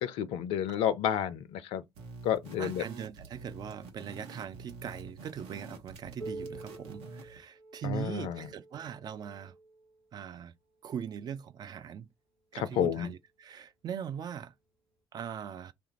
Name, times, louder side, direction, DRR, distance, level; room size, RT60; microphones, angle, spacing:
voice 1, 0.0-1.8 2.2-2.8 7.8-8.4 12.5-13.1, left 10 dB, 50° left, 0.4 m, -30 dB
sound 1, 1.9-7.4, right 3 dB, 55° right, 0.8 m, -48 dB
voice 2, 2.6-9.5 10.1-10.5 10.8-12.1 12.5-14.5 15.1-15.7, right 8 dB, 35° right, 0.4 m, -40 dB
Piano, 6.2-11.5 12.4-12.5 13.0-13.1 13.9-14.0 15.0-15.1, right 2 dB, 85° right, 1.4 m, -48 dB
3.2 x 2.4 x 3.0 m
figure-of-eight pair, 50°, 12 cm